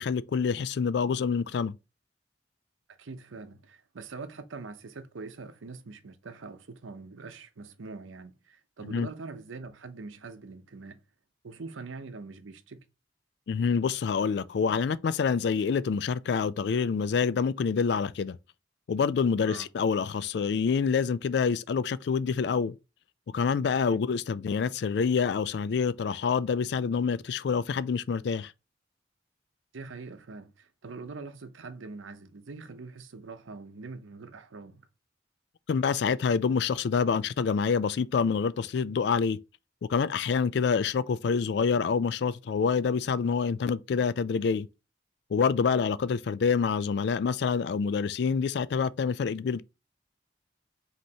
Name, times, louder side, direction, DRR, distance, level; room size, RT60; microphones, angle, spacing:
voice 1, 0.0-1.7 8.8-9.1 13.5-18.4 18.9-22.8 23.3-28.5 35.7-39.4 39.9-44.7 45.3-49.6, left 5 dB, 60° left, 0.3 m, -27 dB
voice 2, 2.9-11.0 11.4-12.8 19.4-19.7 23.9-24.0 29.7-34.9 45.7-45.8, right 4 dB, 90° right, 0.7 m, -43 dB
5.3 x 3.0 x 2.8 m
head